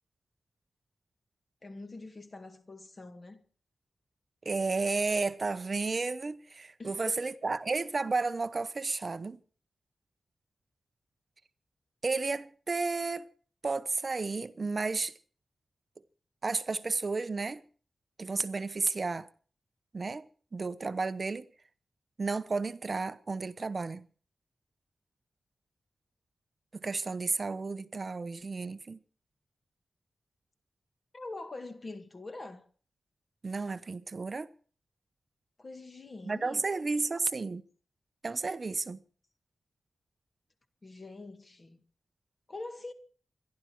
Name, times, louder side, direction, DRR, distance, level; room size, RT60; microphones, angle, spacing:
voice 1, 1.6-3.4 6.8-7.3 31.1-32.6 35.6-36.6 40.8-41.8 42.5-42.9, left 2 dB, 30° left, 2.0 m, -44 dB
voice 2, 4.4-9.4 12.0-13.3 13.6-15.1 16.4-17.6 18.2-19.3 19.9-20.3 20.5-21.5 22.2-24.0 26.7-29.0 33.4-34.5 36.2-37.6 38.2-39.0, right 3 dB, 35° right, 0.9 m, -32 dB
26.0 x 11.5 x 4.6 m
wide cardioid pair, 170°, 0 cm